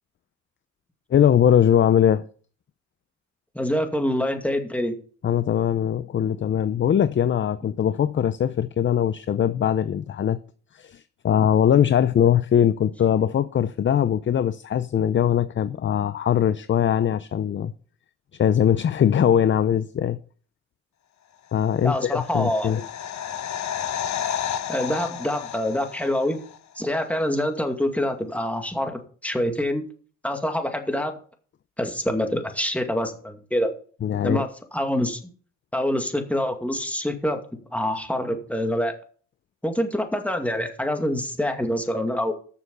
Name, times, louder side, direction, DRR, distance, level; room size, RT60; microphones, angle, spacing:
voice 1, 1.1-2.2 5.2-10.4 10.7-17.7 18.4-20.2 21.5-22.8 34.0-34.4, left 9 dB, 40° left, 0.6 m, -21 dB
voice 2, 3.5-4.9 21.8-22.7 24.7-26.4 26.8-29.8 30.2-31.1 31.8-33.7 34.2-35.2 35.7-37.4 37.7-38.9 39.6-42.3, left 1 dB, 5° left, 2.3 m, -25 dB
sound 1, 21.7-26.6 26.8-26.9, left 9 dB, 65° left, 1.3 m, -32 dB
13.0 x 7.0 x 5.4 m
cardioid pair, 90°, 30 cm